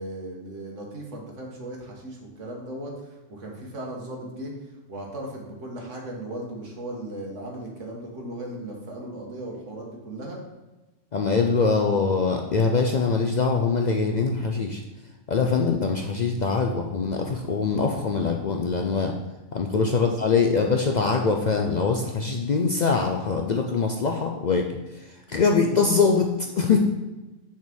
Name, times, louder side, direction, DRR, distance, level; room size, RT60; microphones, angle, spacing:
voice 1, 0.0-4.5 4.9-10.4 20.0-20.1, right 1 dB, 70° right, -1 dB, 1.7 m, -37 dB
voice 2, 11.1-14.8 15.3-19.1 19.5-24.7 24.9-26.8, left 4 dB, 65° left, 2 dB, 0.4 m, -23 dB
6.5 x 3.6 x 6.1 m, 1.1 s
omnidirectional pair, 1.3 m